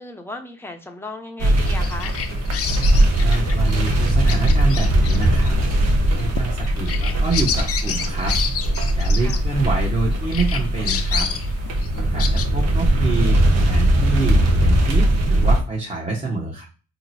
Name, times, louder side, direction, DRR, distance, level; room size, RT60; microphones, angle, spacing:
voice 1, 0.0-2.2 9.2-9.4, left 2 dB, 10° left, 4 dB, 0.7 m, -35 dB
sound 1, 1.4-15.6, right 1 dB, 60° right, 0.9 m, -19 dB
Bird vocalization bird call bird song, 1.6-10.0 10.3-12.5, left 7 dB, 50° left, 0.5 m, -30 dB
voice 2, 3.2-5.5 6.1-8.3 8.9-11.3 11.9-13.4 13.7-16.6, right 3 dB, 20° right, -4 dB, 1.0 m, -27 dB
2.9 x 2.1 x 4.1 m, 0.35 s
cardioid pair, 90°, 30 cm